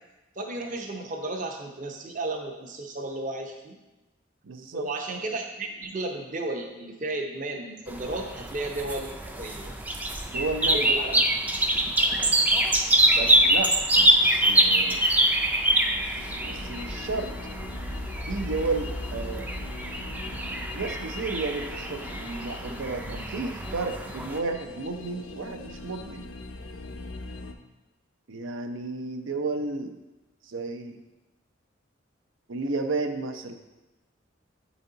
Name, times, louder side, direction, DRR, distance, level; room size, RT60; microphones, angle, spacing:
voice 1, 0.4-3.8 4.7-9.1 9.4-9.7 10.7-11.2 13.2-13.4, right 2 dB, 40° right, 2 dB, 0.7 m, -33 dB
voice 2, 4.4-4.9 10.3-10.9 13.1-15.1 15.9-17.3 18.2-19.5 20.7-26.3 28.3-30.0 30.5-31.0 32.5-33.5, right 3 dB, 85° right, 7 dB, 0.6 m, -32 dB
sound 1, 7.9-24.4, right 1 dB, 10° right, 0.3 m, -25 dB
sound 2, 16.1-27.5, left 3 dB, 75° left, 0.5 m, -40 dB
8.1 x 4.1 x 3.9 m, 1.0 s
head